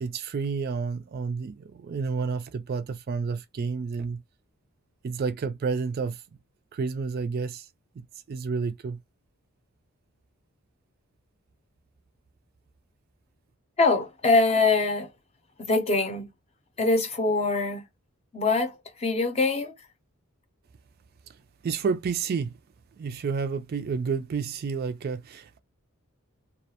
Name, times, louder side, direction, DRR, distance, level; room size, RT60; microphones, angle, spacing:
voice 1, 0.0-4.2 5.0-6.2 6.7-7.7 8.0-9.0 21.6-22.6 23.0-25.6, right 5 dB, 45° right, 0.3 m, -30 dB
voice 2, 13.8-15.1 15.6-16.3 16.8-17.8 18.3-18.7 19.0-19.7, left 3 dB, 30° left, 0.6 m, -23 dB
2.3 x 2.1 x 2.7 m
head